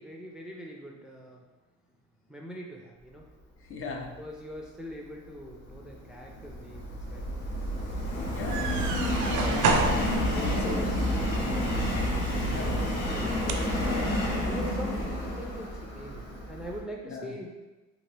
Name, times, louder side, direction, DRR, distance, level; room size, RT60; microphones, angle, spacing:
voice 1, 0.0-1.4 2.3-3.2 4.2-7.3 10.2-10.9 12.5-15.7 15.9-17.5, equal, ahead, -1 dB, 0.4 m, -43 dB
voice 2, 3.7-4.2 8.3-9.9 10.2-11.2 12.5-12.9 17.0-17.3, left 3 dB, 45° left, 1 dB, 0.6 m, -39 dB
Subway metro underground, 5.5-16.8, left 1 dB, 85° left, 0.9 m, -30 dB
sound 1, 8.3-13.8, right 3 dB, 80° right, 0.5 m, -32 dB
2.9 x 2.8 x 3.2 m, 1.1 s
cardioid pair, 90°, 30 cm